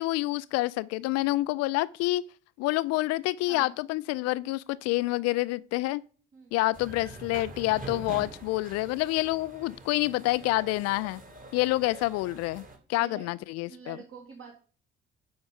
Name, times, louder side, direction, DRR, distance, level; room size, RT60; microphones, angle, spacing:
voice 1, 0.0-2.2 2.6-6.0 6.5-11.2 11.5-12.6 12.9-14.0, left 19 dB, 55° left, 0.4 m, -28 dB
sound 1, 6.7-12.8, right 3 dB, 25° right, 2.2 m, -45 dB
voice 2, 13.0-13.3 13.6-14.5, right 6 dB, 40° right, 2.3 m, -46 dB
7.9 x 5.2 x 5.1 m
figure-of-eight pair, 50°, 30 cm